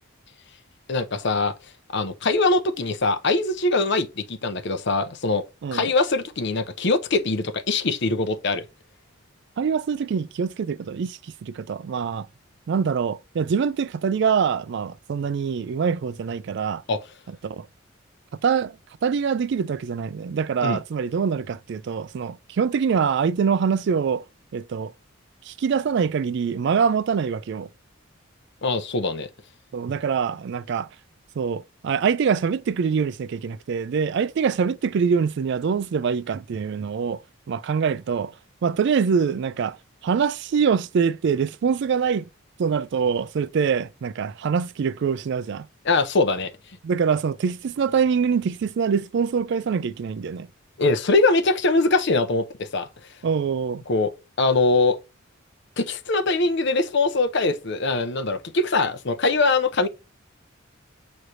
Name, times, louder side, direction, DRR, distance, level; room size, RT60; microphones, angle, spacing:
voice 1, 0.9-1.5 1.9-5.4 5.7-8.6 16.9-17.0 20.6-20.8 28.6-29.3 45.8-46.5 50.8-52.9 53.9-54.1 54.4-55.0 55.8-59.9, left 3 dB, 55° left, 0.7 m, -22 dB
voice 2, 9.6-12.3 12.7-16.8 17.4-17.7 18.4-18.8 19.0-24.2 24.5-24.9 25.5-27.7 29.7-30.9 31.4-37.2 37.5-38.3 38.6-39.8 40.0-42.3 42.6-45.6 46.8-50.5 53.2-53.8, right 6 dB, 55° right, 0.3 m, -24 dB
6.2 x 3.2 x 2.6 m
head